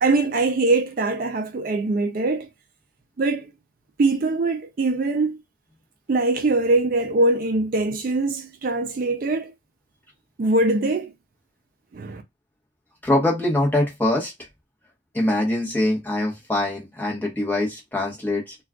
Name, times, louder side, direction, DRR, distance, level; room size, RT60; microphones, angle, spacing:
voice 1, 0.0-2.5 3.2-3.5 4.0-5.4 6.1-9.5 10.4-11.1 11.9-12.2, right 2 dB, 45° right, 0.4 m, -22 dB
voice 2, 13.0-14.3 15.1-18.6, left 1 dB, 10° left, 0.9 m, -23 dB
2.3 x 2.3 x 3.5 m
head